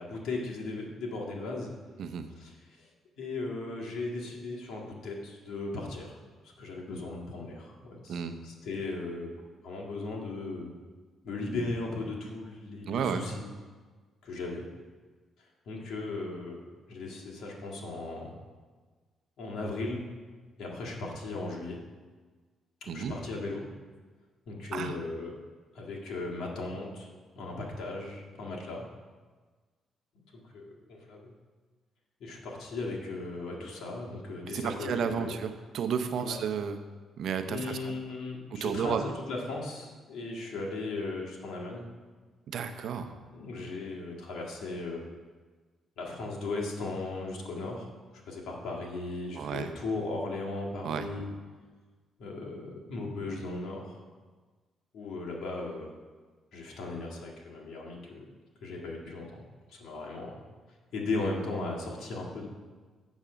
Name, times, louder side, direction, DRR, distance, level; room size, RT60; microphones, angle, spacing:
voice 1, 0.0-1.7 2.4-2.5 2.8-2.9 3.2-6.2 6.4-9.3 9.6-10.7 11.2-13.5 14.2-14.7 15.7-16.6 16.9-18.3 19.4-20.0 20.6-21.8 22.8-23.7 24.5-25.4 25.7-27.1 27.4-28.9 30.3-31.3 32.2-35.4 36.2-36.4 37.4-39.0 39.3-41.9 43.3-45.1 46.0-51.3 52.2-54.0 54.9-55.9 56.5-58.3 58.6-59.4 59.7-60.4 60.9-62.5, left 2 dB, 75° left, -2 dB, 1.8 m, -37 dB
voice 2, 12.9-13.2 22.9-23.1 24.7-25.0 34.5-36.8 37.2-37.9 38.5-39.0 42.5-43.1 49.3-49.7 50.8-51.1, right 7 dB, 70° right, 8 dB, 0.6 m, -32 dB
7.3 x 6.7 x 5.0 m, 1.4 s
cardioid pair, 90°, 0 cm